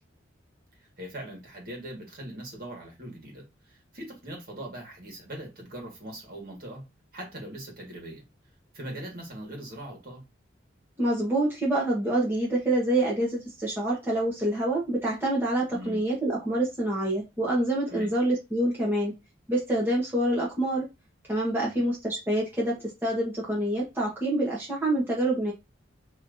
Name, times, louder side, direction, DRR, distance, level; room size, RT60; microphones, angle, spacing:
voice 1, 1.0-6.8 7.1-8.2 8.7-10.2 15.7-16.0 17.9-18.1 21.6-21.8, right 1 dB, 50° right, 1.8 m, -41 dB
voice 2, 11.0-19.1 19.5-20.9 21.3-25.5, right 1 dB, 10° right, 1.2 m, -26 dB
5.4 x 2.9 x 2.7 m
head